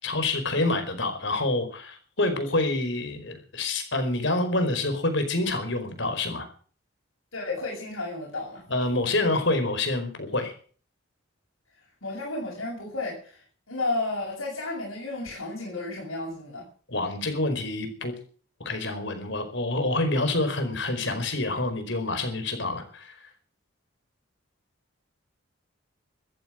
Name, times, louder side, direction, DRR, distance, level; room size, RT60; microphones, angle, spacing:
voice 1, 0.0-6.5 8.7-10.5 16.9-18.1 18.6-23.2, left 2 dB, 60° left, 7 dB, 4.8 m, -27 dB
voice 2, 7.3-8.6 12.0-13.4 13.7-16.6, left 2 dB, 85° left, -3 dB, 7.4 m, -32 dB
14.0 x 14.0 x 6.4 m, 0.43 s
head